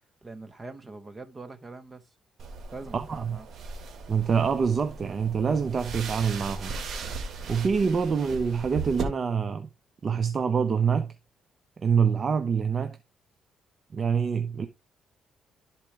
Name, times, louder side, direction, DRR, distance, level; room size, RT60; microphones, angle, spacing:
voice 1, 0.2-2.1 2.7-3.5, right 3 dB, 25° right, 1.2 m, -43 dB
sound 1, 2.4-9.0, right 4 dB, 60° right, 1.6 m, -38 dB
voice 2, 2.9-3.4 4.1-6.7 7.5-9.7 10.0-11.1 11.8-13.0 13.9-14.7, right 6 dB, 45° right, 0.7 m, -25 dB
11.5 x 4.4 x 3.4 m
cardioid pair, 90°, 0 cm